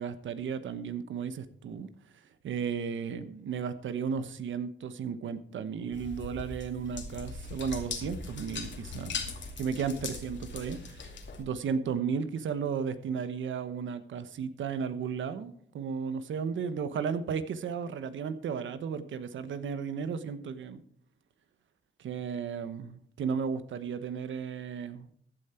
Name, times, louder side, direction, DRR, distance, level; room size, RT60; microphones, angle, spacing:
voice 1, 0.0-1.9 2.4-9.1 9.6-11.0 11.4-20.8 22.0-25.1, right 6 dB, 90° right, 12 dB, 1.1 m, -34 dB
sound 1, 5.9-11.4, left 4 dB, 70° left, 2.5 m, -40 dB
15.0 x 8.8 x 4.5 m, 0.62 s
cardioid pair, 70°, 19 cm